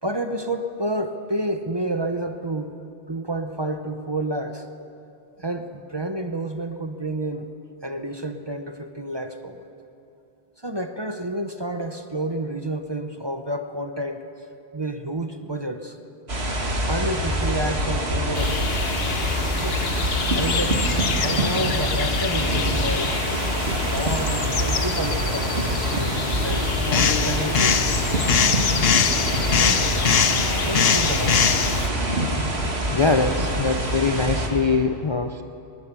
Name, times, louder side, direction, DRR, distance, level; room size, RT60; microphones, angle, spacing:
voice 1, 0.0-2.8 3.1-4.7 5.4-7.5 7.8-9.7 10.6-14.2 14.7-16.0 16.8-18.7 19.5-19.8 20.3-20.8 21.2-23.2 23.7-28.0 29.6-29.9 30.6-31.6, right 1 dB, 25° right, 7 dB, 0.8 m, -30 dB
sound 1, 16.3-34.5, right 1 dB, 65° right, 2.5 m, -25 dB
sound 2, 18.3-31.9, left 6 dB, 60° left, 1.1 m, -24 dB
voice 2, 32.9-35.4, left 4 dB, 35° left, 7 dB, 0.5 m, -22 dB
21.0 x 19.0 x 6.9 m, 2.8 s
omnidirectional pair, 1.1 m